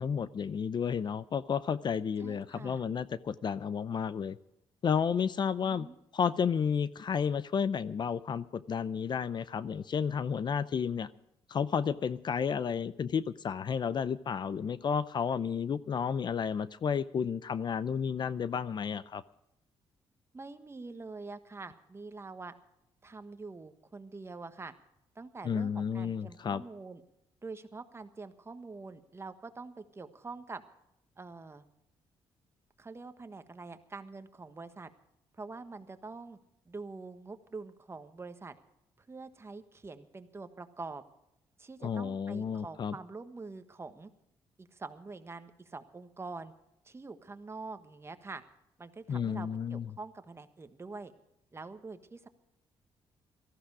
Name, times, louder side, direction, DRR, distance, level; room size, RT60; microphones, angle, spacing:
voice 1, 0.0-4.4 4.8-5.9 6.1-11.1 11.5-19.2 25.4-26.6 41.8-42.9 49.1-49.8, left 7 dB, 45° left, 16 dB, 0.6 m, -32 dB
voice 2, 2.2-2.8 5.6-6.0 20.3-22.5 23.0-24.7 25.1-27.0 27.4-30.6 31.2-31.6 32.8-34.9 35.4-36.4 36.6-38.5 39.0-41.0 41.6-44.1 44.6-46.5 46.8-48.4 48.8-51.1 51.5-52.3, right 3 dB, 25° right, 9 dB, 1.4 m, -45 dB
18.0 x 14.5 x 4.8 m, 0.83 s
cardioid pair, 100°, 10 cm